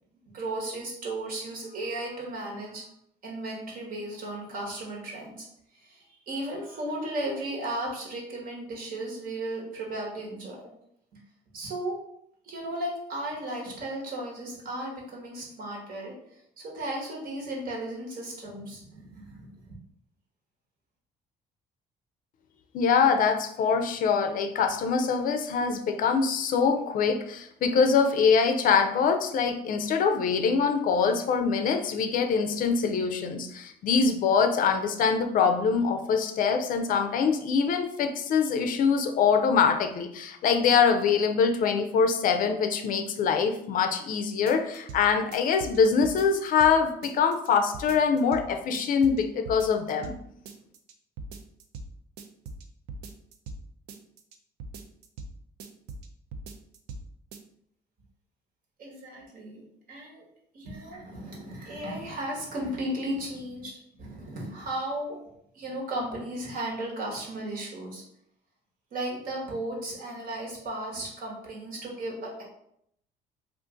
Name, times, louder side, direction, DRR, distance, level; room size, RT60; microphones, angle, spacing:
voice 1, 0.3-2.8 3.2-5.5 5.7-10.7 11.5-12.0 12.4-16.1 16.6-19.8 58.8-59.6 59.9-60.2 60.5-65.2 65.5-68.0 68.9-72.4, right 1 dB, 60° right, -2 dB, 1.2 m, -35 dB
voice 2, 22.7-50.1, left 6 dB, 55° left, 6 dB, 0.4 m, -24 dB
sound 1, 44.5-45.0 45.3-46.7 47.0-47.5 47.7-48.5 48.7-49.2 49.5-50.2 50.5-50.9 51.2-51.9 52.2-53.6 53.9-54.4 54.6-55.3 55.6-56.1 56.3-57.0 57.3-57.4, right 3 dB, 75° right, 0.4 m, -40 dB
2.5 x 2.4 x 3.7 m, 0.73 s
cardioid pair, 110°, 17 cm